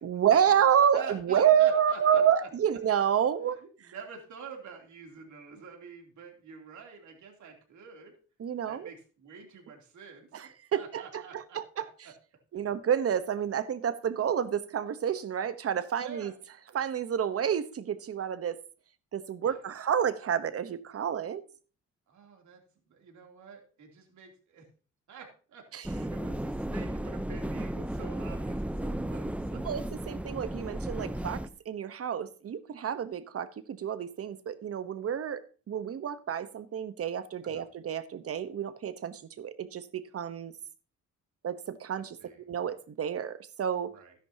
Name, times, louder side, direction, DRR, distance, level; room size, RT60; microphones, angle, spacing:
voice 1, 0.0-3.6 8.4-8.9 10.3-11.9 12.5-16.3 16.7-18.6 19.1-21.4 25.7-25.9 29.6-40.5 41.4-42.2 42.5-43.9, right 8 dB, 50° right, 13 dB, 1.1 m, -29 dB
voice 2, 0.9-2.5 3.6-8.1 8.7-12.1 15.9-16.3 19.4-19.8 22.1-24.7 25.1-29.6 37.4-37.6 42.2-42.4 43.9-44.1, right 5 dB, 70° right, 2 dB, 3.1 m, -48 dB
sound 1, 25.8-31.5, right 1 dB, 5° right, 0.7 m, -34 dB
12.5 x 10.5 x 2.8 m, 0.39 s
cardioid pair, 90°, 30 cm